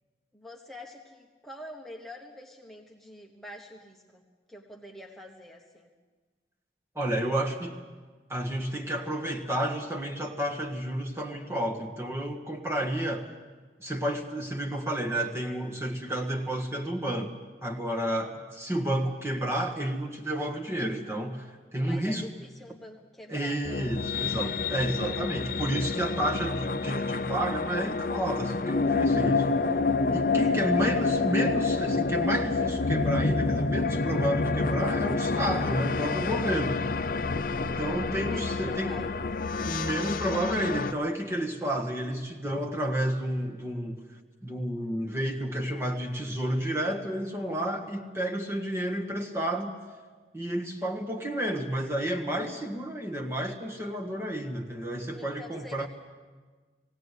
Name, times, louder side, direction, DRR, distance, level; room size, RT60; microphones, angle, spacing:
voice 1, 0.3-4.2 4.5-5.9 21.7-24.1 30.5-30.7 38.2-39.5 55.1-55.9, left 1 dB, ahead, -1 dB, 1.3 m, -46 dB
voice 2, 6.9-7.8 8.3-13.3 13.8-17.3 17.6-22.2 23.3-29.5 30.1-36.8 37.6-39.0 39.6-44.0 44.4-49.8 50.3-55.9, right 1 dB, 15° right, 1 dB, 1.5 m, -31 dB
sound 1, 23.6-40.9, left 3 dB, 50° left, 0.6 m, -28 dB
20.0 x 17.5 x 8.3 m, 1.4 s
head